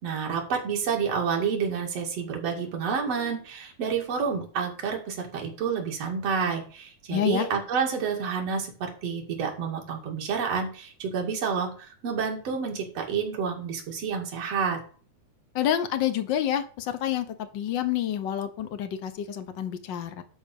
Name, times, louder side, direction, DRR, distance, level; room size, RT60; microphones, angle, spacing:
voice 1, 0.0-14.8, right 6 dB, 55° right, 1 dB, 3.3 m, -29 dB
voice 2, 7.1-7.5 15.5-20.2, left 10 dB, 75° left, 10 dB, 1.0 m, -28 dB
11.5 x 4.3 x 7.0 m, 0.41 s
omnidirectional pair, 3.4 m